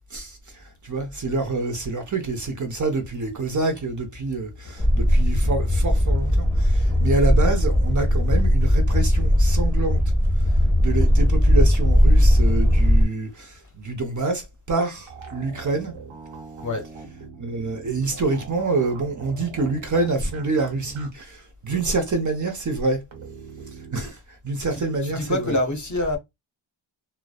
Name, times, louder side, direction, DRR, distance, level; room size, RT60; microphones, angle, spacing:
voice 1, 0.1-10.0 10.8-15.9 17.4-23.0 23.9-25.6, right 3 dB, 40° right, 0.7 m, -27 dB
sound 1, 4.8-13.0, equal, 5° left, 0.9 m, -18 dB
sound 2, 15.1-21.1 21.3-21.4 23.1-24.1, right 5 dB, 70° right, 0.9 m, -42 dB
voice 2, 24.7-26.2, left 1 dB, 40° left, 0.7 m, -26 dB
2.5 x 2.1 x 2.3 m
wide cardioid pair, 80°, 48 cm